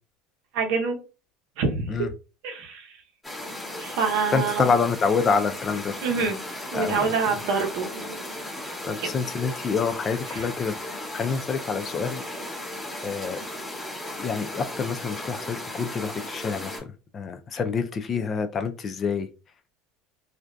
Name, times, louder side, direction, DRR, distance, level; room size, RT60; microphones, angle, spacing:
voice 1, 0.5-1.0 1.6-1.9 2.4-3.0 3.8-4.7 6.0-6.4 6.7-8.2 9.0-9.1 10.3-10.5, right 5 dB, 70° right, 3 dB, 0.6 m, -26 dB
sound 1, 3.2-16.8, left 1 dB, 15° left, 1.1 m, -36 dB
voice 2, 4.3-6.2 6.7-7.1 8.8-12.2 13.0-13.4 14.2-16.8 17.1-19.3, left 5 dB, 30° left, 8 dB, 0.3 m, -27 dB
2.5 x 2.2 x 2.2 m, 0.33 s
supercardioid pair, 120°, 0 cm